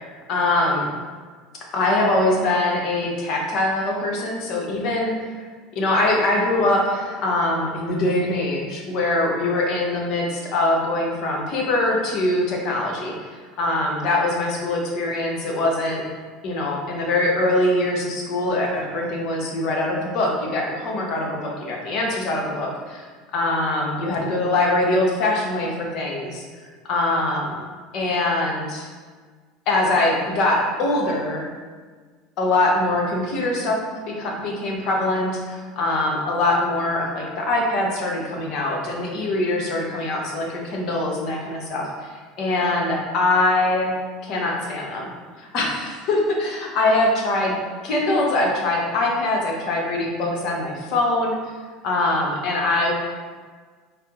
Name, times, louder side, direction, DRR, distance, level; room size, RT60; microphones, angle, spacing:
voice 1, 0.3-0.9 1.7-5.3 5.7-16.0 16.4-23.1 23.3-27.6 27.9-28.9 29.7-31.4 32.4-33.8 34.1-43.9 44.2-45.1 45.4-47.5 47.8-51.4 51.8-52.9, left 2 dB, 55° left, -1 dB, 0.8 m, -23 dB
4.2 x 2.0 x 3.7 m, 1.5 s
hypercardioid pair, 75°, 0 cm